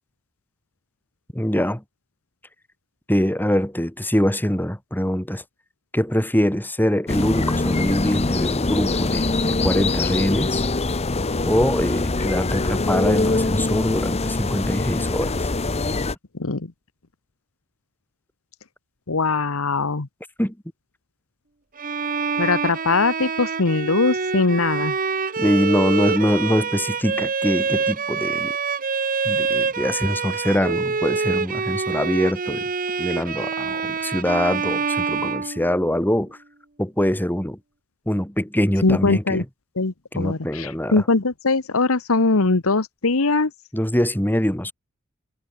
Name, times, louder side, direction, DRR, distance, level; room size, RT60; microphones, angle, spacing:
voice 1, 1.3-1.8 3.1-5.4 5.9-10.6 11.4-15.5 20.4-20.5 25.4-28.5 29.2-32.7 33.0-36.4 36.8-37.6 38.1-39.4 40.1-41.0 43.7-44.7, equal, 10° left, 3.2 m, -23 dB
sound 1, 7.1-16.2, left 2 dB, 30° left, 0.9 m, -23 dB
voice 2, 19.1-20.1 22.4-24.9 38.8-39.4 39.8-43.5, left 3 dB, 65° left, 1.2 m, -21 dB
Bowed string instrument, 21.8-36.1, right 5 dB, 40° right, 1.3 m, -26 dB
head